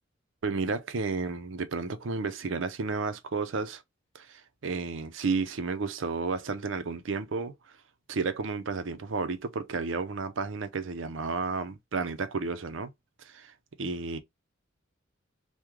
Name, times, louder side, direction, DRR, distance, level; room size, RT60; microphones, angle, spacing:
voice 1, 0.4-3.8 4.1-7.5 8.1-12.9 13.2-13.5 13.8-14.2, right 4 dB, 65° right, 0.6 m, -32 dB
3.6 x 2.2 x 3.0 m
head